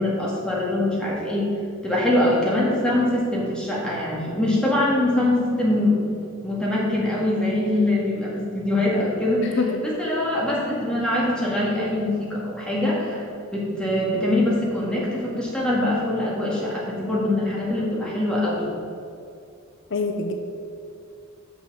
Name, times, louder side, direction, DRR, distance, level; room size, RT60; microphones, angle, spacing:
voice 1, 0.0-1.5 1.8-6.0 6.4-13.2 13.5-18.7, left 1 dB, 5° left, -5 dB, 2.0 m, -23 dB
voice 2, 19.9-20.3, left 4 dB, 60° left, 5 dB, 0.6 m, -24 dB
6.4 x 6.2 x 6.9 m, 2.5 s
head